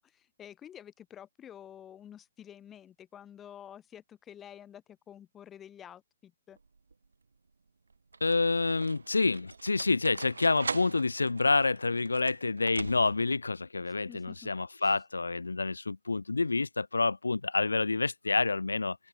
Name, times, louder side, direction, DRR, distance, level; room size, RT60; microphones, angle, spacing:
voice 1, 0.0-6.6 14.1-14.5 14.8-14.9, left 9 dB, 15° left, 3.6 m, -50 dB
sound 1, 6.6-7.1 7.9-13.4, right 4 dB, 70° right, 1.4 m, -42 dB
voice 2, 8.2-19.0, left 3 dB, 75° left, 1.7 m, -28 dB
open air
figure-of-eight pair, 130°, 0 cm